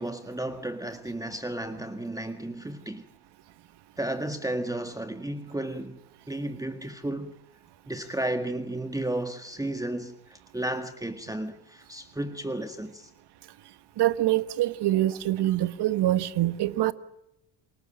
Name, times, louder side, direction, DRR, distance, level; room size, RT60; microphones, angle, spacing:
voice 1, 0.0-3.0 4.0-6.0 6.3-7.3 7.9-13.1, right 1 dB, 5° right, 1.8 m, -33 dB
voice 2, 14.0-16.9, right 14 dB, 55° right, 1.5 m, -25 dB
28.5 x 19.0 x 8.9 m
hypercardioid pair, 70°, 48 cm